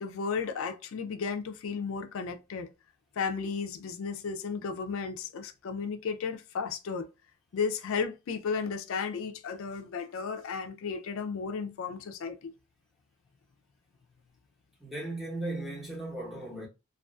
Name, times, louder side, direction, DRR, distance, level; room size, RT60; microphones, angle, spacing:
voice 1, 0.0-2.7 3.2-7.1 7.5-12.5, left 5 dB, 65° left, 0.3 m, -34 dB
voice 2, 14.8-16.7, right 2 dB, ahead, 0.8 m, -36 dB
2.4 x 2.3 x 2.2 m
head